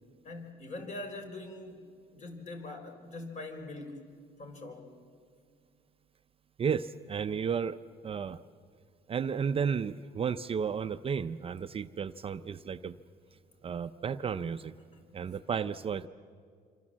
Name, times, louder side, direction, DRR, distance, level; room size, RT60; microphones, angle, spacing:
voice 1, 0.2-1.8 2.1-4.0 4.4-4.9 14.9-15.1, left 2 dB, 45° left, 4 dB, 4.0 m, -43 dB
voice 2, 6.6-7.8 8.0-8.4 9.1-13.0 13.6-14.7 15.1-16.1, right 6 dB, 35° right, 11 dB, 0.6 m, -33 dB
26.5 x 25.0 x 7.5 m, 2.1 s
cardioid pair, 110°, 17 cm